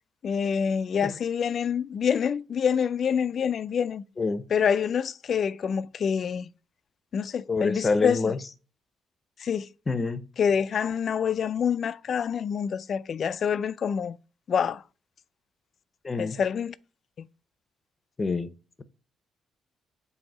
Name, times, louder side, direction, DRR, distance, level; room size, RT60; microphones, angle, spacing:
voice 1, 0.2-4.0 4.5-6.5 7.1-8.3 9.4-9.7 10.4-14.2 14.5-14.8 16.2-16.7 17.2-17.3, left 7 dB, 55° left, 0.4 m, -26 dB
voice 2, 7.5-8.4 9.9-10.2 16.0-16.4 18.2-18.5, left 3 dB, 30° left, 0.7 m, -26 dB
7.7 x 2.8 x 5.4 m
cardioid pair, 90°, 0 cm